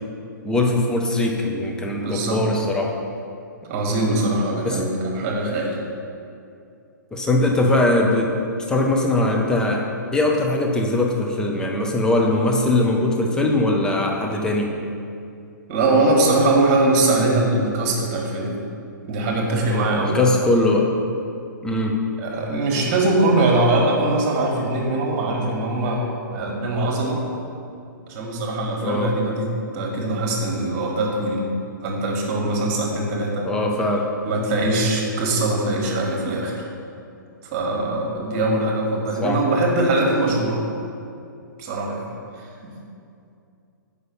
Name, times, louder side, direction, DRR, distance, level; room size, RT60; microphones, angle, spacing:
voice 1, 0.4-2.9 4.6-4.8 7.1-8.3 8.7-9.8 10.1-14.7 20.0-20.9 21.6-22.0 28.8-29.2 33.4-34.1 39.2-39.4, left 2 dB, 5° left, 0 dB, 0.9 m, -21 dB
voice 2, 1.9-2.4 3.7-5.8 15.7-18.6 19.0-20.2 22.2-26.1 26.3-27.2 28.1-31.4 31.8-33.5 34.3-36.7 37.5-40.6 41.6-42.7, right 2 dB, 35° right, -1 dB, 1.8 m, -22 dB
8.0 x 5.6 x 5.4 m, 2.5 s
figure-of-eight pair, 120°, 11 cm